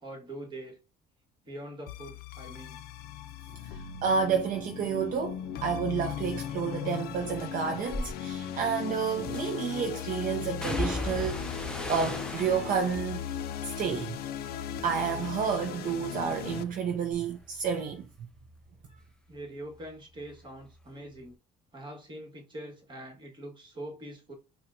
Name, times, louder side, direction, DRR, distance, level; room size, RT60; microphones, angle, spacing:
voice 1, 0.0-0.8 1.4-2.8 19.3-21.4 21.7-24.3, right 1 dB, 30° right, 1.4 m, -43 dB
sound 1, 1.9-16.6, left 9 dB, 65° left, 0.4 m, -37 dB
voice 2, 3.6-11.6 11.9-13.2 13.6-14.2 14.8-18.1, right 6 dB, 55° right, 0.5 m, -30 dB
sound 2, 7.9-8.1 9.3-9.8 10.6-14.8 15.2-15.8 16.2-19.4 19.7-20.8 21.1-21.3, left 1 dB, 5° left, 0.5 m, -39 dB
4.2 x 2.2 x 2.5 m
cardioid pair, 110°, 17 cm